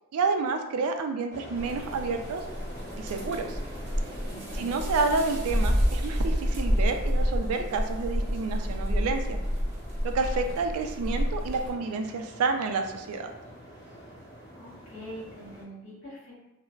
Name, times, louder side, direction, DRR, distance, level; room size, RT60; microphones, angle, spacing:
voice 1, 0.1-2.4 3.0-3.6 4.5-9.4 10.0-13.3, right 4 dB, 85° right, 5 dB, 0.3 m, -29 dB
sound 1, 1.3-15.6, equal, 35° left, 1.3 m, -45 dB
sound 2, 1.6-11.7, equal, 50° right, 0.7 m, -29 dB
voice 2, 4.2-4.7 14.5-16.3, equal, 60° left, -8 dB, 1.3 m, -44 dB
3.1 x 2.0 x 2.3 m, 0.98 s
head